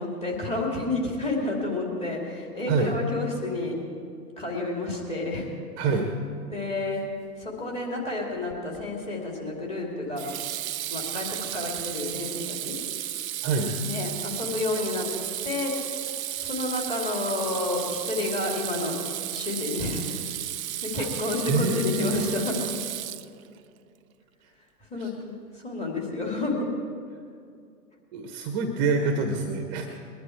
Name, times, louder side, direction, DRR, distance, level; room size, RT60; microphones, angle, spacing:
voice 1, 0.0-3.8 4.4-5.5 6.5-7.0 7.4-10.3 10.9-12.7 13.8-15.1 15.4-15.7 16.4-19.0 19.3-20.2 20.8-22.6 24.9-25.3 25.6-26.7, left 2 dB, 15° left, -2 dB, 2.5 m, -30 dB
voice 2, 5.8-6.1 13.4-13.7 21.0-21.1 21.5-22.3 24.9-25.1 28.1-29.9, right 3 dB, 30° right, 4 dB, 1.2 m, -26 dB
Water tap faucet / Sink (filling or washing), 8.5-8.9 10.2-23.6, right 12 dB, 60° right, 0.6 m, -33 dB
21.0 x 11.0 x 4.6 m, 2.4 s
hypercardioid pair, 135°, 49 cm